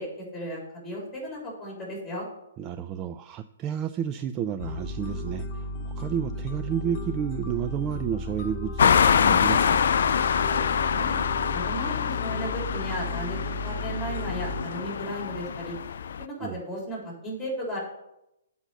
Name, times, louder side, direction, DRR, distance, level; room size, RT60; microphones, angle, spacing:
voice 1, 0.0-2.3 10.9-11.2 11.5-15.8 16.2-17.8, equal, 5° left, -2 dB, 3.7 m, -35 dB
voice 2, 2.6-9.9 16.4-16.6, right 9 dB, 25° right, 10 dB, 0.3 m, -31 dB
sound 1, 4.6-14.6, left 1 dB, 30° left, 1.7 m, -34 dB
sound 2, 8.8-16.2, left 7 dB, 55° left, 0.3 m, -25 dB
7.9 x 5.4 x 7.6 m, 0.86 s
figure-of-eight pair, 120°, 0 cm